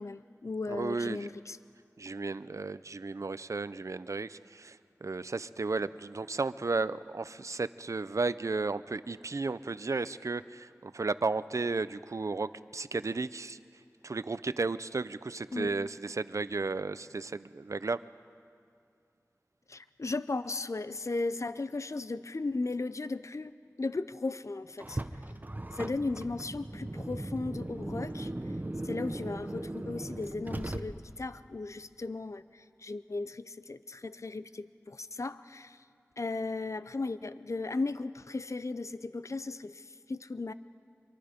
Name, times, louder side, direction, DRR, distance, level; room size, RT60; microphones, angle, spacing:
voice 1, 0.0-1.6 15.5-15.7 19.7-23.5 23.8-25.0 25.7-28.3 28.8-35.8 36.2-40.5, left 3 dB, 70° left, 14 dB, 0.5 m, -36 dB
voice 2, 0.7-1.3 2.0-13.6 14.0-18.0, right 3 dB, 75° right, 15 dB, 0.4 m, -34 dB
Car, 24.8-31.3, right 1 dB, 35° right, 0.8 m, -38 dB
25.0 x 23.5 x 5.1 m, 2.3 s
wide cardioid pair, 40°, 5 cm